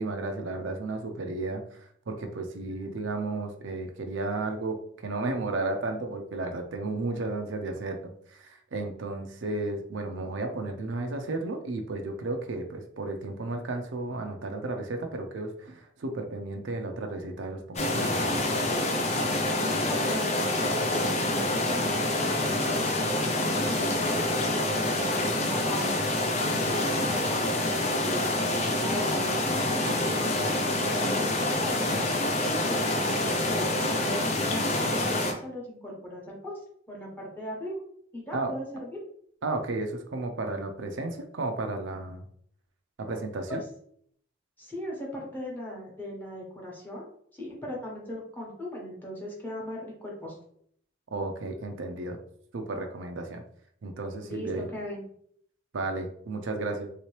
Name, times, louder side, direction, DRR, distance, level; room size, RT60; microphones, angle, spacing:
voice 1, 0.0-18.5 38.3-38.5 39.4-42.3 43.0-43.6 51.1-52.2 52.5-53.4 53.8-54.7 55.7-56.9, right 2 dB, 70° right, 4 dB, 0.5 m, -33 dB
sound 1, 17.8-35.3, left 1 dB, 35° left, 0.5 m, -27 dB
voice 2, 19.5-24.4 24.7-25.1 25.4-26.0 26.4-28.4 28.6-31.9 32.4-36.5 36.9-37.8 38.1-39.0 43.5-43.6 44.6-47.0 47.3-50.4 54.2-55.0, equal, 10° left, -3 dB, 1.0 m, -38 dB
3.3 x 2.9 x 3.1 m, 0.64 s
head